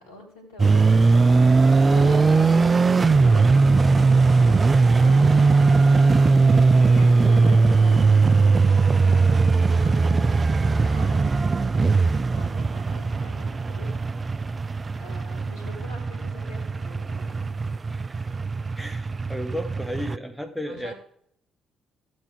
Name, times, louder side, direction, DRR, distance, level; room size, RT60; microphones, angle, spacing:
voice 1, 0.0-1.6 1.9-6.2 6.9-14.4 15.0-17.5 20.7-20.9, left 1 dB, 75° left, 2.2 m, -44 dB
sound 1, 0.6-20.2, right 4 dB, 30° right, 0.4 m, -19 dB
voice 2, 7.1-7.4 17.9-18.3 18.8-20.9, equal, ahead, 1.2 m, -34 dB
14.5 x 7.8 x 3.5 m
figure-of-eight pair, 40°, 0 cm